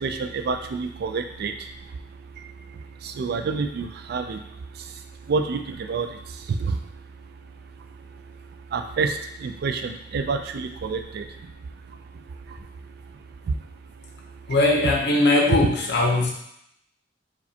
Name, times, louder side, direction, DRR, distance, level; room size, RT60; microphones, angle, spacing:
voice 1, 0.0-1.5 3.2-4.4 5.3-5.6 5.9-6.1 8.7-9.1 9.4-11.2, right 4 dB, 55° right, 7 dB, 0.3 m, -27 dB
voice 2, 14.5-16.3, left 2 dB, 60° left, 0 dB, 0.7 m, -20 dB
4.8 x 2.2 x 2.7 m, 0.75 s
head